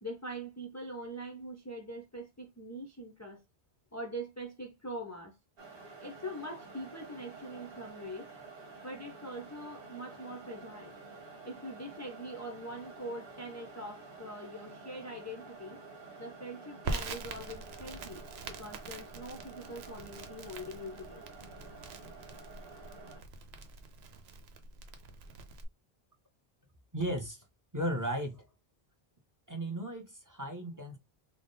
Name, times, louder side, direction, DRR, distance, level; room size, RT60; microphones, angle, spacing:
voice 1, 0.0-3.4 3.9-5.4 6.0-8.3 8.8-10.9 11.4-15.8 16.2-21.2, right 1 dB, 25° left, 0.4 m, -43 dB
sound 1, 5.6-23.2, right 3 dB, 65° right, 1.3 m, -50 dB
Crackle, 16.8-25.6, right 3 dB, 90° right, 0.9 m, -44 dB
voice 2, 26.9-27.4 27.7-28.5 29.5-31.0, right 1 dB, 20° right, 0.7 m, -35 dB
3.5 x 2.1 x 3.9 m
omnidirectional pair, 1.0 m